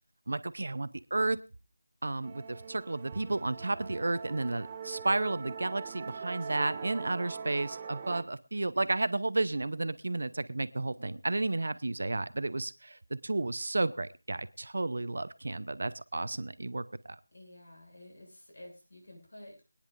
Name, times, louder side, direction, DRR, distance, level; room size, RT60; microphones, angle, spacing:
voice 1, 0.3-1.4 2.0-16.8, right 2 dB, 60° right, 14 dB, 0.8 m, -32 dB
Musical instrument, 2.2-8.2, right 6 dB, 20° right, 0.8 m, -42 dB
voice 2, 17.3-19.8, left 1 dB, 65° left, 1 dB, 7.9 m, -51 dB
24.0 x 10.0 x 2.6 m, 0.31 s
figure-of-eight pair, 170°, 0 cm